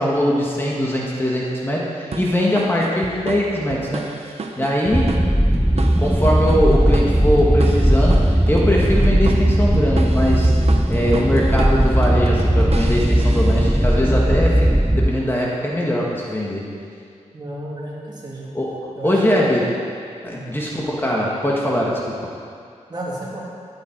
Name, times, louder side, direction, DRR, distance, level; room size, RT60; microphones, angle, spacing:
voice 1, 0.0-5.1 5.8-10.5 10.9-16.6 18.5-18.7 19.0-19.7 20.2-22.1, equal, 15° left, -4 dB, 1.7 m, -21 dB
sound 1, 2.1-14.1, right 4 dB, 55° right, 0.9 m, -33 dB
sound 2, 4.9-15.1, equal, 5° right, 0.4 m, -17 dB
voice 2, 17.3-18.5 19.0-19.4 20.2-20.5 22.9-23.4, right 1 dB, 35° right, -6 dB, 3.1 m, -32 dB
12.5 x 10.5 x 4.6 m, 2.3 s
wide cardioid pair, 105°, 12 cm